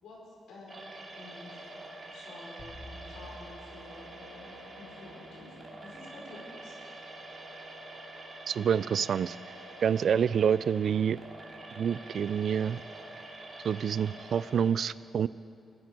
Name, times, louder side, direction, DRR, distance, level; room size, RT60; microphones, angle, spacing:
voice 1, 0.0-1.7 2.1-6.8, left 2 dB, 85° left, -3 dB, 4.6 m, -50 dB
sound 1, 0.7-14.7, right 1 dB, 30° right, 2.6 m, -46 dB
sound 2, 2.6-5.1, equal, 55° left, 2.7 m, -50 dB
voice 2, 8.5-9.4 9.8-11.2 11.7-12.8 13.6-15.3, right 8 dB, 65° right, 19 dB, 0.3 m, -27 dB
17.0 x 9.1 x 9.3 m, 2.5 s
cardioid pair, 90°, 0 cm